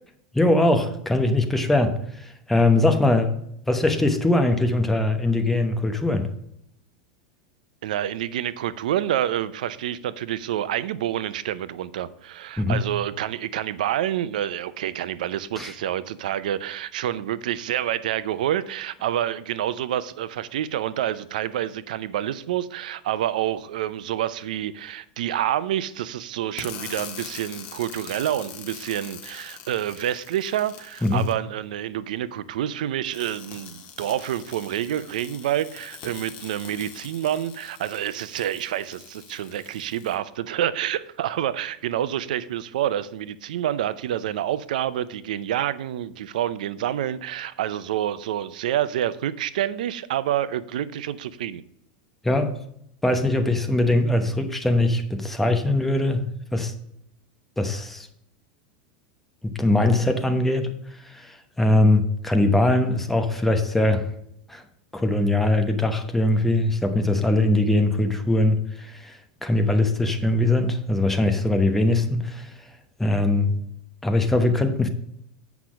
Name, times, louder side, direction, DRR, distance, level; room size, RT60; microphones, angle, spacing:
voice 1, 0.3-3.4 3.7-6.3 12.6-12.9 15.6-15.7 31.0-31.3 52.2-52.6 53.0-56.7 57.6-58.1 59.4-64.1 64.5-64.6 64.9-72.7 73.0-73.6 74.0-74.9, left 2 dB, 5° left, 1.0 m, -21 dB
voice 2, 7.8-51.6, right 11 dB, 85° right, 0.6 m, -28 dB
sound 1, 26.6-31.3 33.1-40.1, left 8 dB, 45° left, 1.6 m, -43 dB
8.2 x 5.9 x 5.1 m
supercardioid pair, 145°, 4 cm